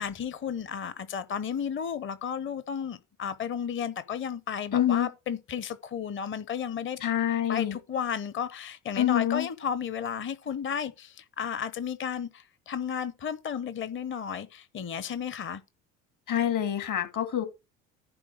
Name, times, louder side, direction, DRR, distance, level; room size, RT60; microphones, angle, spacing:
voice 1, 0.0-7.0 7.5-15.6, left 7 dB, 30° left, 0.9 m, -33 dB
voice 2, 4.7-5.1 7.0-7.8 9.0-9.5 16.3-17.5, left 10 dB, 50° left, 2.3 m, -26 dB
11.0 x 3.7 x 6.4 m
hypercardioid pair, 60°, 40 cm